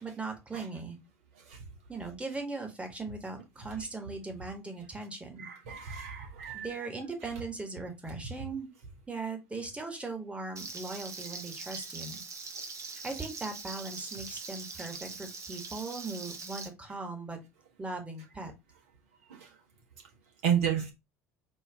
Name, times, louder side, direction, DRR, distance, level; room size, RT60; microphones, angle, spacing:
voice 1, 0.0-1.0 1.9-5.5 6.5-8.7 9.1-12.2 13.0-17.4 17.8-18.5, right 3 dB, 15° right, 4 dB, 1.5 m, -39 dB
voice 2, 5.4-6.9 19.3-19.5 20.4-20.9, right 9 dB, 65° right, 1 dB, 1.4 m, -31 dB
Frying (food), 10.6-16.7, right 4 dB, 40° right, 1.0 m, -42 dB
4.6 x 2.8 x 3.5 m, 0.23 s
figure-of-eight pair, 60°, 8 cm